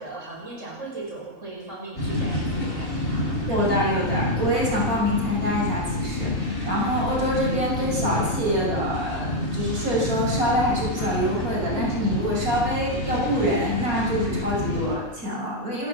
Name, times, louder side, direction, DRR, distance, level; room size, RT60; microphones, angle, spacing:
voice 1, 0.0-3.3, right 2 dB, 55° right, -2 dB, 6.2 m, -37 dB
sound 1, 2.0-15.0, left 1 dB, 40° left, 6.4 m, -28 dB
voice 2, 3.5-15.9, equal, 80° right, -3 dB, 6.4 m, -25 dB
28.5 x 16.0 x 7.3 m, 1.2 s
omnidirectional pair, 1.5 m